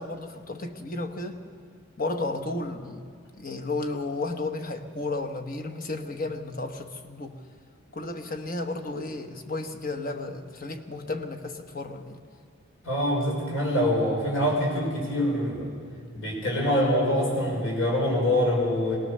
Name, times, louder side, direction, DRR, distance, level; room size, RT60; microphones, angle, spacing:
voice 1, 0.0-1.4 2.0-3.1 3.4-7.4 7.9-12.2, left 2 dB, 40° left, 5 dB, 1.3 m, -33 dB
voice 2, 12.8-15.7 16.1-19.0, left 1 dB, 65° left, -2 dB, 6.2 m, -25 dB
22.0 x 19.0 x 6.7 m, 2.1 s
head